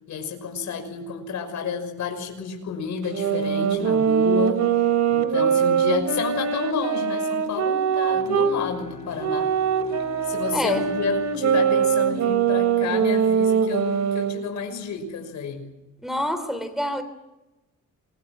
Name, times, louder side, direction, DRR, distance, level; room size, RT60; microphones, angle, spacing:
voice 1, 0.1-9.5 10.2-15.7, left 6 dB, 70° left, 5 dB, 6.1 m, -30 dB
sound 1, 3.1-8.6 9.2-14.4, right 7 dB, 65° right, 3.6 m, -22 dB
sound 2, 8.1-12.8, left 1 dB, 20° left, 7.4 m, -42 dB
voice 2, 10.5-10.9 16.0-17.0, equal, ahead, 8 dB, 3.5 m, -26 dB
28.5 x 24.5 x 6.3 m, 1.0 s
cardioid pair, 90°, 30 cm